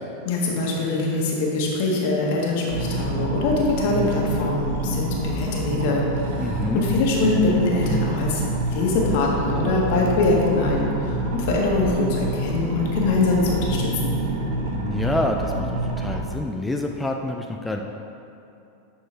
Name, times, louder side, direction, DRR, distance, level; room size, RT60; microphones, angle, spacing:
voice 1, 0.2-6.0 6.3-14.2, left 2 dB, 65° left, -2 dB, 1.6 m, -23 dB
sound 1, 2.7-16.2, right 1 dB, 75° right, 1.1 m, -27 dB
voice 2, 6.4-6.8 11.5-11.6 14.8-15.6 16.0-17.8, left 2 dB, 10° left, 2 dB, 0.4 m, -27 dB
11.0 x 4.5 x 3.4 m, 2.7 s
hypercardioid pair, 115°, 0 cm